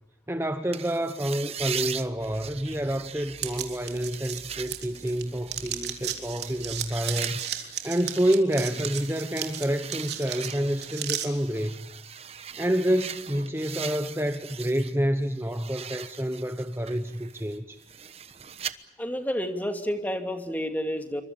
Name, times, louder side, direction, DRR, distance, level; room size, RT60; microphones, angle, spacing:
voice 1, 0.3-11.9 12.6-17.8, equal, 15° right, 1.0 m, -28 dB
sound 1, 0.7-15.0 15.3-18.7, right 8 dB, 35° right, 1.1 m, -40 dB
sound 2, 1.6-7.2, right 1 dB, 80° left, 6.4 m, -52 dB
sound 3, 3.4-5.2 5.5-11.3, right 11 dB, 70° right, 3.5 m, -34 dB
voice 2, 19.0-21.2, equal, 10° left, 2.5 m, -30 dB
28.0 x 24.5 x 7.2 m
head